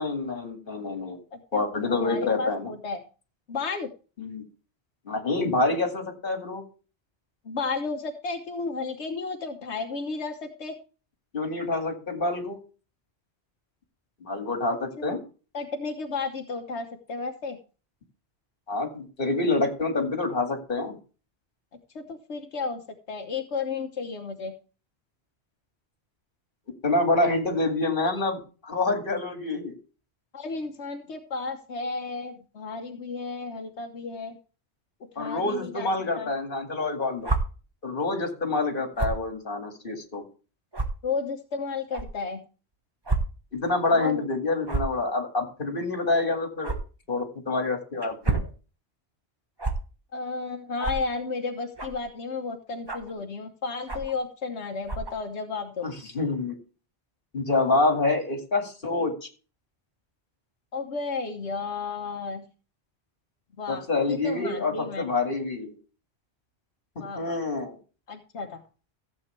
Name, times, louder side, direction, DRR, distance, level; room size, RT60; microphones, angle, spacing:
voice 1, 0.0-1.2 1.5-2.7 4.2-4.4 5.1-6.6 11.3-12.6 14.2-15.2 18.7-21.0 26.8-29.7 35.2-37.3 37.8-40.2 43.5-46.7 47.1-48.4 55.8-56.5 57.3-59.3 63.7-65.7 67.2-67.8, left 2 dB, 55° left, 4 dB, 2.3 m, -27 dB
voice 2, 1.3-3.0 3.5-3.9 7.4-10.7 14.7-15.2 15.5-17.6 21.9-22.8 23.1-24.5 30.3-34.4 35.2-35.9 36.2-36.3 41.0-42.4 43.9-44.3 50.1-55.9 60.7-62.4 63.6-63.8 64.1-65.1 67.0-67.4 68.1-68.6, left 4 dB, 90° left, 4 dB, 1.4 m, -33 dB
sound 1, 37.2-37.4 39.0-39.2 39.9-40.0 40.7-40.9 41.9-42.1 43.1-43.2 43.5-43.7 44.6-45.0 46.6-46.8 48.0-48.5 49.6-49.7 50.8-51.0 51.8-52.0 52.9-53.1 53.9-54.2 54.8-55.1, right 3 dB, 25° right, 1.3 m, -28 dB
15.0 x 7.9 x 3.3 m, 0.35 s
omnidirectional pair, 1.1 m